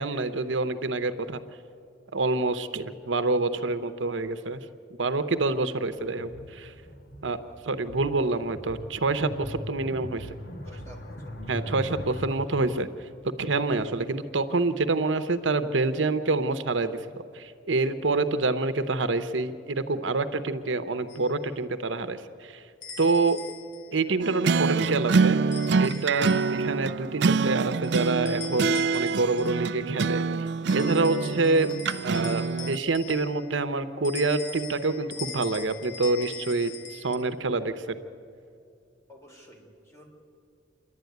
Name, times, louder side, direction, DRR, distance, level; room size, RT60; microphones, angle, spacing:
voice 1, 0.0-1.4 2.1-4.6 5.0-6.7 7.2-7.4 7.6-10.3 11.5-12.9 13.4-22.6 23.0-23.4 23.9-25.4 25.8-31.7 32.0-37.9, right 3 dB, 85° right, 11 dB, 0.9 m, -27 dB
sound 1, 6.1-12.2, left 1 dB, 50° left, 1.8 m, -40 dB
voice 2, 10.6-11.7 39.1-40.1, left 1 dB, 15° left, -1 dB, 4.0 m, -51 dB
sound 2, 21.1-21.3 22.8-23.9 25.5-26.7 27.8-29.6 30.7-33.5 34.0-37.2, left 5 dB, 90° left, 2.1 m, -42 dB
sound 3, 24.2-32.8, right 4 dB, 65° right, 0.4 m, -25 dB
28.0 x 11.0 x 9.3 m, 2.6 s
head